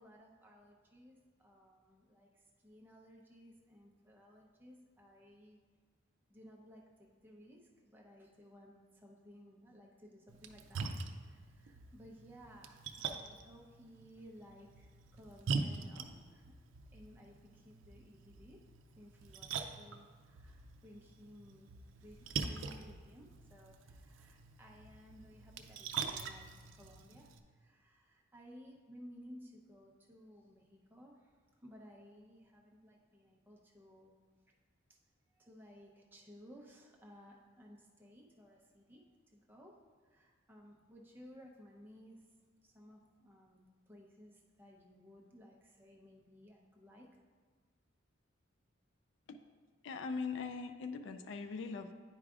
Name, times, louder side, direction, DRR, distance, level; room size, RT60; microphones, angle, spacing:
voice 1, 0.0-5.6 6.3-16.5 16.9-18.6 19.0-21.7 22.0-34.2 35.3-39.7 40.0-42.3 42.6-47.1, equal, 10° right, -2 dB, 0.7 m, -58 dB
Splash splatter, 10.3-27.4, right 5 dB, 80° right, 0.5 m, -44 dB
voice 2, 49.8-51.9, left 4 dB, 65° left, 8 dB, 0.3 m, -41 dB
9.8 x 4.8 x 2.4 m, 1.5 s
head